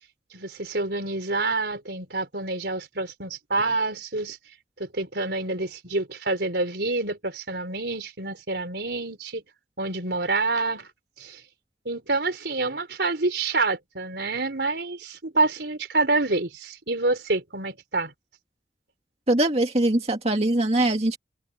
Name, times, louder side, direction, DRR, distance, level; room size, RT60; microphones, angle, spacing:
voice 1, 0.3-4.4 4.8-9.4 9.8-10.9 11.2-11.4 11.9-18.1, right 3 dB, 75° right, 3.9 m, -27 dB
voice 2, 19.3-21.2, right 1 dB, 35° right, 2.1 m, -22 dB
head